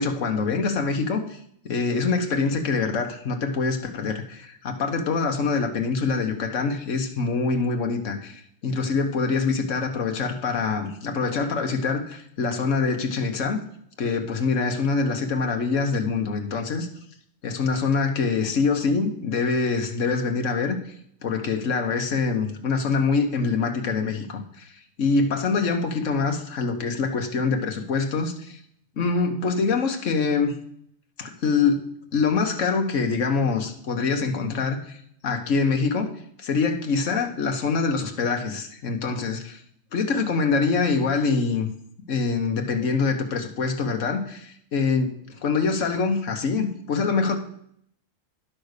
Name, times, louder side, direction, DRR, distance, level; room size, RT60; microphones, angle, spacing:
voice 1, 0.0-1.4 1.6-13.6 14.0-16.9 17.4-20.8 21.2-24.7 25.0-28.6 29.0-30.6 31.2-31.8 32.1-35.0 35.2-36.1 36.4-39.6 39.9-41.7 42.1-47.4, left 4 dB, 70° left, 4 dB, 1.5 m, -25 dB
10.5 x 6.2 x 6.6 m, 0.67 s
omnidirectional pair, 1.4 m